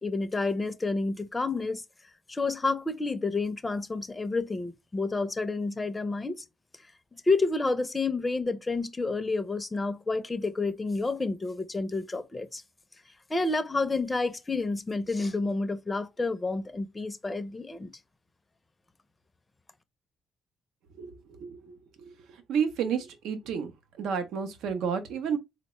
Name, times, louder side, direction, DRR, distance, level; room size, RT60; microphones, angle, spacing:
voice 1, 0.0-1.8 2.3-6.4 7.3-12.6 13.3-17.9, left 3 dB, 20° left, 0.4 m, -29 dB
voice 2, 21.4-21.7 22.5-23.7 24.0-25.4, right 7 dB, 85° right, 0.6 m, -30 dB
3.8 x 2.1 x 3.0 m
cardioid pair, 90°, 0 cm